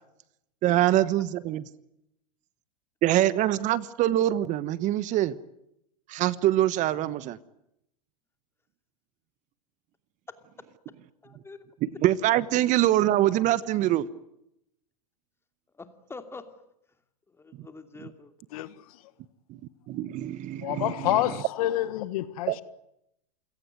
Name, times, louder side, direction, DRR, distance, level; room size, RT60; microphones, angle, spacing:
voice 1, 0.6-1.6 3.0-5.3 6.1-7.4 11.8-14.1 19.9-20.9 22.5-22.6, right 14 dB, 40° right, 1.2 m, -24 dB
voice 2, 11.2-11.7 15.8-16.5 17.4-18.3, left 3 dB, 10° left, 2.8 m, -44 dB
voice 3, 20.6-22.6, left 15 dB, 60° left, 1.6 m, -28 dB
28.5 x 17.5 x 9.5 m
hypercardioid pair, 115°, 21 cm